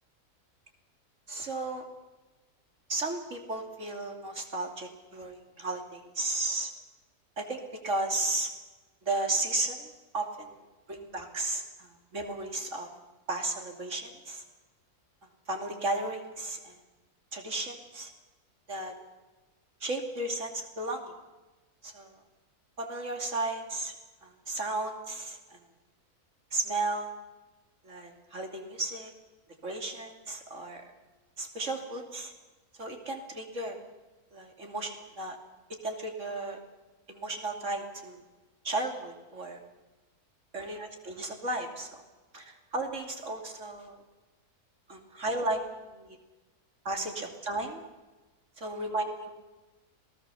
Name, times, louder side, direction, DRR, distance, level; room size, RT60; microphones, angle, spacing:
voice 1, 1.3-1.8 2.9-6.7 7.4-8.5 9.0-10.6 10.9-12.9 13.3-14.4 15.5-16.8 17.3-18.1 18.7-19.0 19.8-21.1 21.8-22.1 22.8-23.9 24.2-25.6 26.5-27.1 27.8-29.1 29.6-30.9 31.4-32.3 32.8-33.8 34.3-35.4 35.8-36.6 37.1-38.2 38.6-39.6 40.5-42.0 42.3-44.0 44.9-46.2 46.8-47.8 48.6-49.3, right 2 dB, 50° right, 4 dB, 3.2 m, -34 dB
27.0 x 18.5 x 7.1 m, 1.2 s
omnidirectional pair, 1.6 m